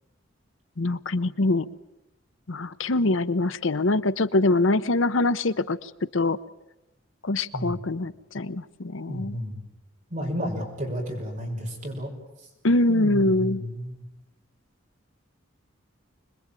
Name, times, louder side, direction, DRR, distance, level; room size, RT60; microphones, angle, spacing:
voice 1, 0.8-1.7 2.5-6.4 7.2-9.3 12.6-13.6, left 2 dB, 75° left, 14 dB, 0.9 m, -24 dB
voice 2, 9.1-9.6 10.1-12.1 12.9-14.0, equal, 40° right, 0 dB, 6.3 m, -32 dB
26.0 x 21.0 x 9.0 m, 0.94 s
head